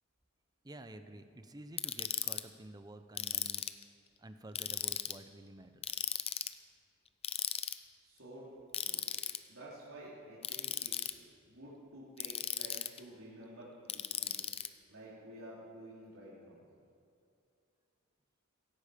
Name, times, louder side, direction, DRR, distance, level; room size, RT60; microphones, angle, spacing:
voice 1, 0.6-3.6 4.2-5.9, right 1 dB, 20° right, 9 dB, 0.7 m, -51 dB
Ratchet pawl, 1.8-2.4 3.2-3.8 4.6-5.2 5.8-6.5 7.2-7.7 8.7-9.4 10.4-11.1 12.2-13.0 13.9-14.7, left 10 dB, 30° left, 0.5 m, -36 dB
voice 2, 8.0-8.5 8.8-9.0 9.5-14.6 14.9-16.7, right 1 dB, 80° right, -8 dB, 3.8 m, -51 dB
16.5 x 16.0 x 5.2 m, 2.4 s
head